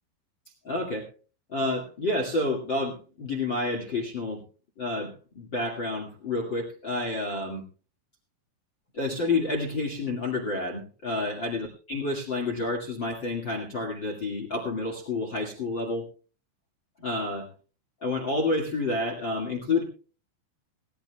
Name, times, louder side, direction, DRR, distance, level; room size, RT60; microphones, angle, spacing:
voice 1, 0.6-1.1 1.5-4.4 4.8-7.6 8.9-16.0 17.0-17.5 18.0-19.8, left 2 dB, 55° left, 2 dB, 1.2 m, -29 dB
18.5 x 16.0 x 2.3 m, 0.36 s
omnidirectional pair, 5.7 m